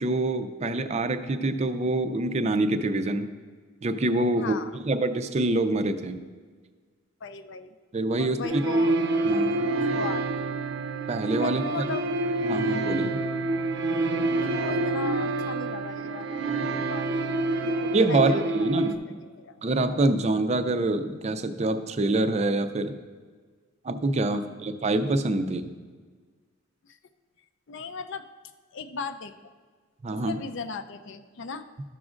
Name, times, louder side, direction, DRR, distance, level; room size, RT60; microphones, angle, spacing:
voice 1, 0.0-3.3 3.8-6.2 7.9-8.4 9.2-9.7 11.1-11.7 12.4-13.2 17.9-19.0 19.6-22.9 23.8-25.7 30.0-30.3, right 2 dB, 35° right, 9 dB, 0.4 m, -25 dB
voice 2, 4.3-4.8 7.2-7.7 8.2-9.0 10.0-10.5 11.4-12.1 14.4-17.1 17.6-19.6 24.3-24.5 26.8-27.0 27.7-28.3 28.7-29.5 30.1-31.7, left 5 dB, 65° left, 11 dB, 0.5 m, -37 dB
sound 1, 8.4-19.0, right 2 dB, 75° right, 0.6 m, -27 dB
13.0 x 6.1 x 2.5 m, 1.5 s
head